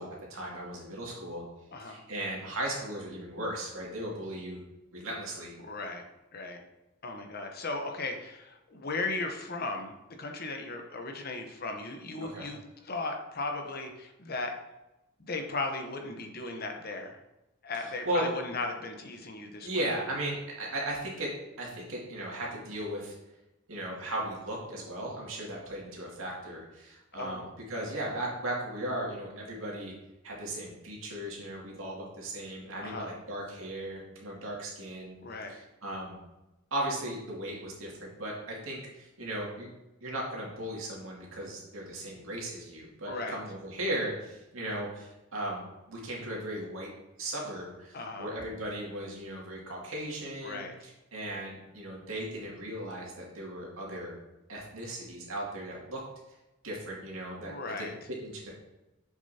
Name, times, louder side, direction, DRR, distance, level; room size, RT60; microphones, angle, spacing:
voice 1, 0.0-1.4 1.8-4.6 4.9-5.5 12.3-12.5 17.7-18.3 19.6-23.1 23.7-29.9 30.2-35.2 35.5-36.2 36.7-39.7 40.0-46.9 47.2-54.1 54.5-56.0 56.6-57.5 57.8-58.5, right 1 dB, 85° right, -3 dB, 2.3 m, -37 dB
voice 2, 5.6-6.0 6.3-6.6 7.0-9.9 10.2-14.6 15.2-17.2 17.6-19.7 27.1-27.4 32.8-33.1 35.2-35.5 43.1-43.4 47.9-48.3 50.4-50.7 57.4-57.9, left 3 dB, 50° left, 4 dB, 0.9 m, -36 dB
7.4 x 6.5 x 2.8 m, 0.98 s
head